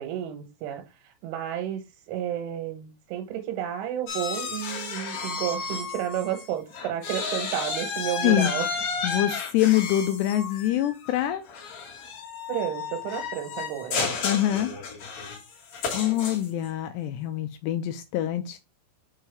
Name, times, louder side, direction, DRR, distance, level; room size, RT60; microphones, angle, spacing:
voice 1, 0.0-8.7 12.5-14.1, right 11 dB, 80° right, 3.5 m, -32 dB
sound 1, 4.1-6.4 6.7-16.7, left 5 dB, 55° left, 3.3 m, -32 dB
voice 2, 8.2-8.5 9.0-11.4 14.2-14.7 15.9-18.6, left 13 dB, 90° left, 2.4 m, -25 dB
7.2 x 4.5 x 3.4 m
omnidirectional pair, 5.5 m